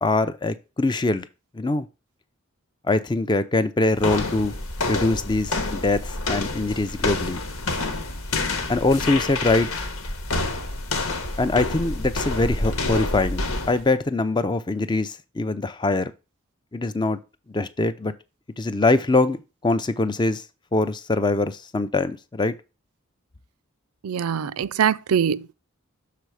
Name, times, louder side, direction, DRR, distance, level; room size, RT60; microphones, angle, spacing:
voice 1, 0.0-1.2 1.5-1.9 2.9-4.5 4.9-7.4 8.7-9.8 11.4-13.4 13.7-16.1 16.7-17.2 17.5-18.1 18.6-19.4 19.6-20.4 20.7-22.5, left 2 dB, 20° left, 0.4 m, -23 dB
sound 1, 4.0-13.9, left 2 dB, 85° left, 1.4 m, -28 dB
voice 2, 24.0-25.5, right 8 dB, 90° right, 0.4 m, -23 dB
6.8 x 4.1 x 4.7 m
head